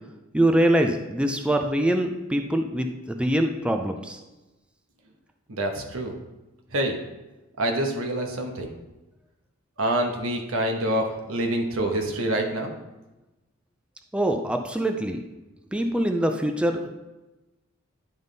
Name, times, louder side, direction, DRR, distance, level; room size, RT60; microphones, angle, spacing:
voice 1, 0.3-4.2 14.1-15.2 15.7-16.9, right 1 dB, 5° right, 4 dB, 0.4 m, -24 dB
voice 2, 5.5-6.1 6.7-7.0 7.6-8.7 9.8-12.7, right 1 dB, 85° right, 3 dB, 1.1 m, -26 dB
10.5 x 3.6 x 4.0 m, 1.1 s
head